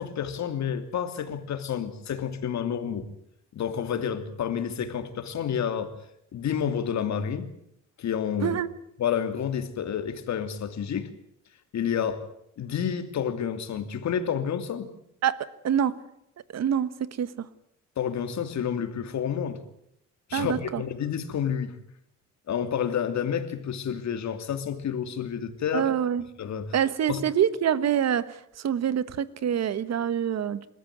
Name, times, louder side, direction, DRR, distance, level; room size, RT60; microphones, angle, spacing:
voice 1, 0.0-3.1 3.5-5.9 6.3-7.5 8.0-8.6 9.0-11.1 11.7-12.2 12.6-14.9 18.0-19.6 20.3-21.8 22.5-25.9 26.4-26.7 27.1-27.2, left 8 dB, 65° left, 8 dB, 2.9 m, -29 dB
voice 2, 15.2-16.0 16.5-17.5 20.3-20.8 25.7-26.2 26.7-30.7, right 9 dB, 60° right, 16 dB, 1.4 m, -26 dB
28.0 x 14.0 x 9.5 m, 0.74 s
cardioid pair, 90°, 30 cm